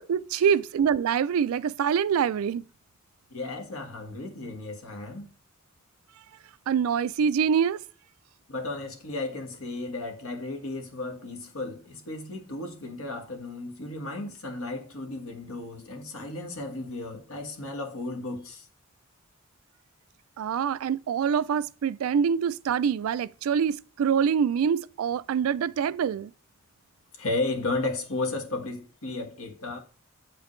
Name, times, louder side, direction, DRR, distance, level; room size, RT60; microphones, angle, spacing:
voice 1, 0.0-2.7 6.7-7.8 20.4-26.3, right 7 dB, 75° right, 0.3 m, -25 dB
voice 2, 3.3-5.3 8.5-18.7 27.1-29.8, left 2 dB, 75° left, 1.4 m, -34 dB
7.4 x 5.0 x 3.1 m
head